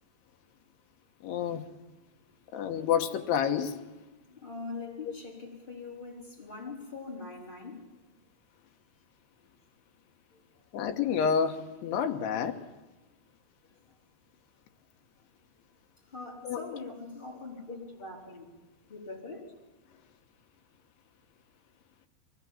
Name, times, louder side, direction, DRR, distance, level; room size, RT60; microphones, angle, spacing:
voice 1, 1.2-1.6 2.5-3.8 10.7-12.6 16.4-16.7, left 7 dB, 70° left, 2.9 m, -29 dB
voice 2, 4.3-7.9 9.4-9.5 10.3-10.4 16.1-18.5 18.9-19.5, left 3 dB, 10° left, 3.6 m, -42 dB
23.0 x 18.0 x 7.4 m
omnidirectional pair, 5.2 m